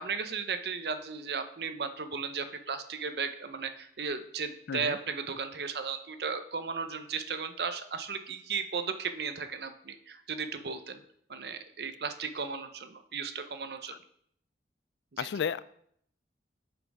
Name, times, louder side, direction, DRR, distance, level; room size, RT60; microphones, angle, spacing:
voice 1, 0.0-11.0 11.3-14.0 15.1-15.3, right 5 dB, 65° right, 9 dB, 0.7 m, -35 dB
voice 2, 15.2-15.6, left 7 dB, 75° left, 17 dB, 0.3 m, -32 dB
6.9 x 6.3 x 4.8 m, 0.67 s
head